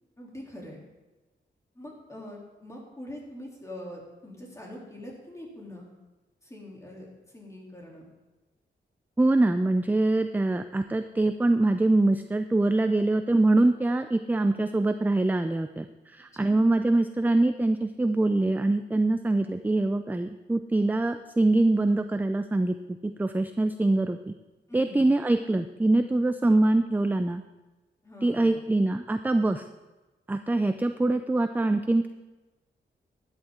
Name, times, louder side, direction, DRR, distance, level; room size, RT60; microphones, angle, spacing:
voice 1, 0.2-0.8 1.7-5.9 6.4-8.0 16.3-16.7 24.7-25.1 28.0-28.6, left 1 dB, 15° left, -3 dB, 3.2 m, -43 dB
voice 2, 9.2-22.7 23.0-24.3 24.7-27.4 28.2-29.6 30.3-32.1, right 2 dB, 10° right, 9 dB, 0.4 m, -24 dB
12.5 x 10.5 x 3.8 m, 1.1 s
wide cardioid pair, 110°, 19 cm